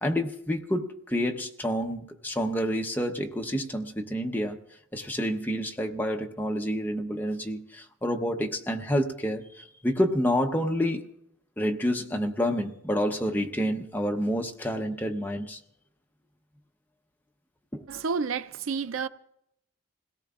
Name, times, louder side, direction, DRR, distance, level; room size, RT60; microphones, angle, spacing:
voice 1, 0.0-4.6 4.9-11.0 11.6-15.6 17.7-17.9, equal, 10° left, 0.8 m, -28 dB
voice 2, 17.9-19.1, right 5 dB, 75° right, 0.5 m, -30 dB
27.5 x 17.5 x 2.5 m
head